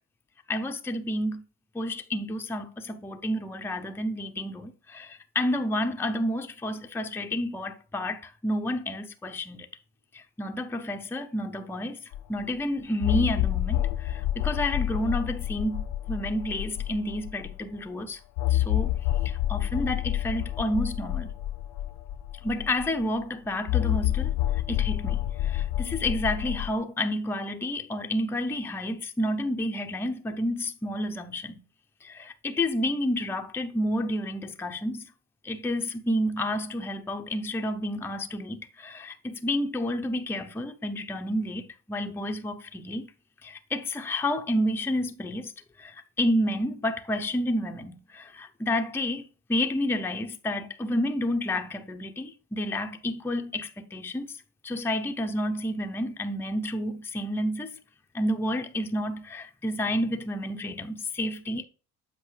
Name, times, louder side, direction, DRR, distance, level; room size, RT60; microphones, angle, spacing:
voice 1, 0.5-1.4 1.7-9.7 10.4-12.0 12.3-18.2 18.5-18.9 19.5-21.3 22.4-24.3 24.7-31.6 32.0-35.0 35.4-43.1 43.4-45.5 45.8-49.2 49.5-54.3 54.6-57.8 58.1-61.6, left 1 dB, 5° left, 0.5 m, -30 dB
sound 1, 12.1-12.2 13.0-17.5 18.4-23.0 23.7-26.7, left 13 dB, 80° left, 0.6 m, -28 dB
7.9 x 5.4 x 3.2 m
cardioid pair, 120°, 38 cm